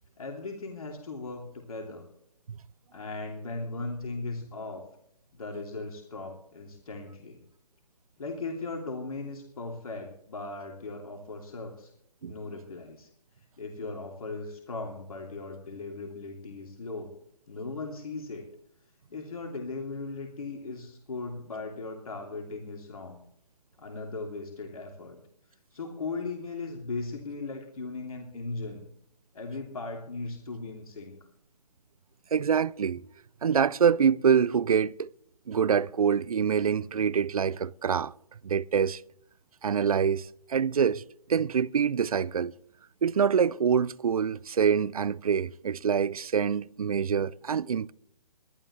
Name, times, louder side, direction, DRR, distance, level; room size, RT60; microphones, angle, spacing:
voice 1, 0.2-2.1 2.9-4.9 5.3-7.4 8.2-11.9 12.3-13.1 13.6-17.1 17.5-18.5 19.1-23.2 23.8-25.2 25.7-28.8 29.3-31.2, left 3 dB, 60° left, 2.9 m, -38 dB
voice 2, 32.3-33.0 33.4-35.1 35.5-38.1 38.4-39.0 39.6-41.0 41.3-42.5 43.0-47.9, right 7 dB, 65° right, 0.5 m, -25 dB
21.5 x 12.0 x 3.2 m
figure-of-eight pair, 140°, 20 cm